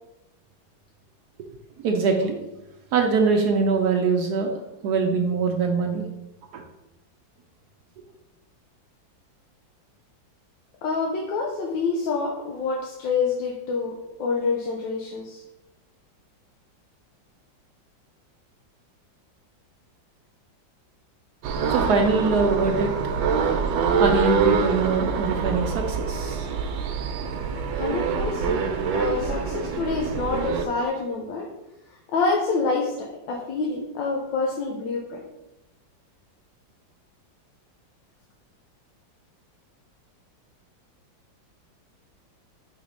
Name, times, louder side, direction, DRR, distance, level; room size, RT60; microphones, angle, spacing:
voice 1, 1.8-2.4 2.9-4.5 4.8-6.0 6.5-6.6 21.7-22.9 24.0-26.5, right 4 dB, 70° right, 3 dB, 1.0 m, -23 dB
voice 2, 10.8-15.4 27.7-28.6 28.9-31.5 32.1-35.2, left 4 dB, 85° left, -1 dB, 1.5 m, -27 dB
sound 1, 21.4-30.6, right 5 dB, 85° right, 1.4 m, -25 dB
4.9 x 3.7 x 5.2 m, 0.96 s
omnidirectional pair, 2.0 m